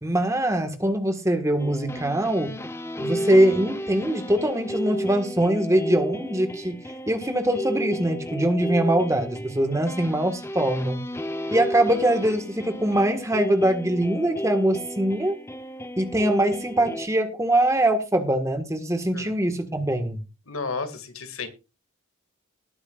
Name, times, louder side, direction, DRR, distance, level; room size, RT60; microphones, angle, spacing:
voice 1, 0.0-2.6 3.0-6.7 7.1-11.1 11.5-15.4 16.0-20.2, right 1 dB, 15° right, 1.7 m, -23 dB
sound 1, 1.6-17.1, equal, 10° left, 0.9 m, -32 dB
voice 2, 20.5-21.5, left 4 dB, 75° left, 2.3 m, -32 dB
19.5 x 9.7 x 2.5 m
head